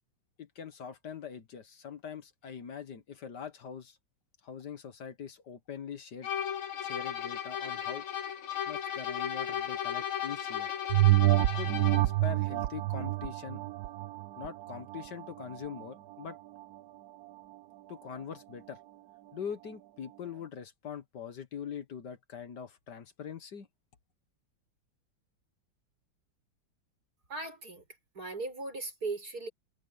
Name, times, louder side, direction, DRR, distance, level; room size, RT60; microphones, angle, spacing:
voice 1, 0.4-4.0 4.4-6.3 6.8-8.1 8.7-10.7 11.4-13.6 14.4-16.4 17.9-18.8 19.3-23.7, left 7 dB, 60° left, 1.8 m, -43 dB
sound 1, 6.2-12.2, left 9 dB, 90° left, 2.5 m, -35 dB
sound 2, 10.9-15.8 16.3-16.4, right 18 dB, 65° right, 1.0 m, -28 dB
voice 2, 27.3-27.8 28.1-29.5, right 3 dB, 50° right, 6.5 m, -38 dB
omnidirectional pair, 2.1 m